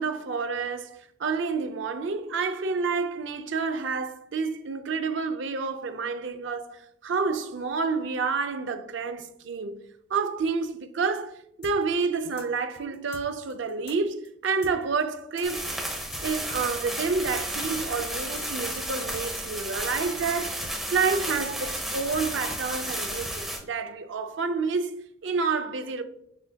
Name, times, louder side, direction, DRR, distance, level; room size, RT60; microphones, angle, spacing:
voice 1, 0.0-9.8 10.1-15.7 16.2-20.6 20.9-24.9 25.2-26.0, right 4 dB, 65° right, 0.4 m, -29 dB
sound 1, 11.6-17.0 17.2-17.4 17.6-23.4, left 4 dB, 55° left, 0.7 m, -46 dB
sound 2, 15.4-23.6, right 1 dB, ahead, 0.8 m, -33 dB
6.3 x 2.8 x 2.2 m
head